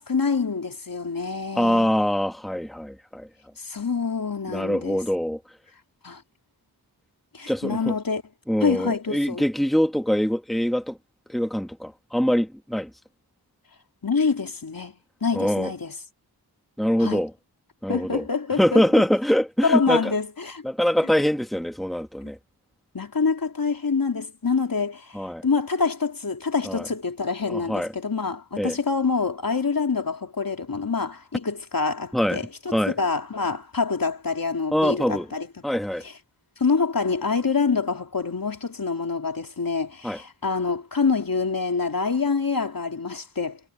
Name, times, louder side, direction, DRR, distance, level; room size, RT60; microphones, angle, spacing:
voice 1, 0.0-1.9 3.6-5.0 6.0-6.2 7.3-8.2 8.6-9.4 14.0-14.9 15.2-15.9 17.0-17.2 17.9-19.0 19.6-20.6 22.9-35.5 36.0-36.1 36.6-43.6, left 4 dB, 55° left, 3.3 m, -26 dB
voice 2, 1.6-3.3 4.5-5.4 7.5-7.9 8.5-11.0 11.3-12.9 15.4-15.7 16.8-17.3 17.8-18.2 18.6-20.1 20.6-22.4 25.1-25.4 26.6-26.9 27.5-27.9 28.6-28.8 32.1-32.4 32.7-32.9 34.7-35.3 35.6-36.0 40.0-40.2, equal, ahead, 1.8 m, -23 dB
wide cardioid pair, 55°, 40 cm